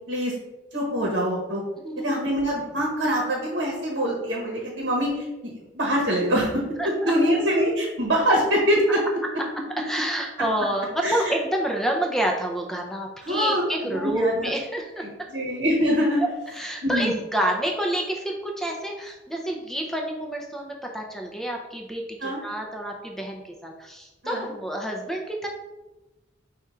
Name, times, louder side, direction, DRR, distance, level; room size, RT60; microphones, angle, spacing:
voice 1, 0.7-1.6 2.0-6.6 7.0-9.0 11.0-11.3 13.2-14.6 15.0-16.2 16.8-17.1 22.2-22.4 24.2-24.5, equal, 65° right, -2 dB, 1.0 m, -24 dB
voice 2, 1.8-2.2 6.8-7.1 9.8-15.0 16.5-25.5, right 1 dB, ahead, 1 dB, 0.5 m, -28 dB
4.9 x 2.4 x 4.3 m, 1.0 s
head